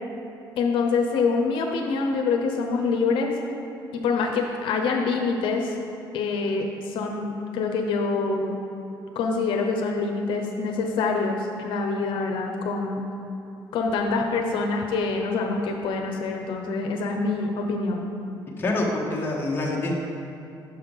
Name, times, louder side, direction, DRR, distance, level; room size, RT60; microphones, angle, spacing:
voice 1, 0.6-3.3 3.9-5.7 6.1-8.5 9.1-13.0 13.7-18.1, left 4 dB, 80° left, 2 dB, 0.7 m, -25 dB
voice 2, 18.6-20.0, left 2 dB, 25° left, -2 dB, 1.0 m, -26 dB
6.0 x 5.7 x 5.2 m, 2.8 s
cardioid pair, 155°, 9 cm